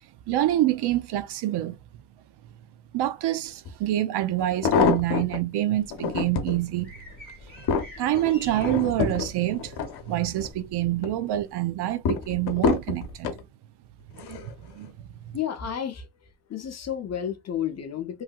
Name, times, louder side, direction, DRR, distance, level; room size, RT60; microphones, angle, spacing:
voice 1, 0.3-1.8 2.9-6.9 8.0-9.8 10.0-13.4 14.1-14.4 14.7-15.3, right 14 dB, 70° right, 0.5 m, -26 dB
sound 1, 3.6-3.7 4.4-5.4 5.9-6.6 7.1-10.5 10.9-11.4 12.0-13.4 14.2-14.5 14.8-14.9, left 6 dB, 65° left, 0.8 m, -27 dB
sound 2, 5.7-10.8, left 1 dB, 20° right, 1.1 m, -48 dB
voice 2, 15.3-16.1 16.5-18.2, left 9 dB, 40° left, 0.6 m, -31 dB
3.2 x 2.7 x 2.3 m
cardioid pair, 155°, 41 cm